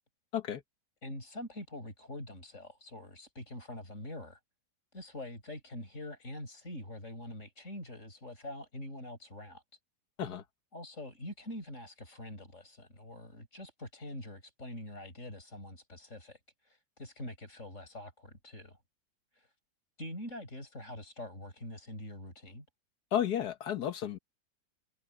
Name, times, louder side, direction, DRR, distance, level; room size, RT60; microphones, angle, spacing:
voice 1, 1.0-4.4 4.9-9.6 10.7-18.8 19.3-19.5 20.0-22.7, left 1 dB, 45° left, 7.5 m, -45 dB
voice 2, 23.1-24.2, left 10 dB, 70° left, 1.8 m, -32 dB
omnidirectional pair, 1.8 m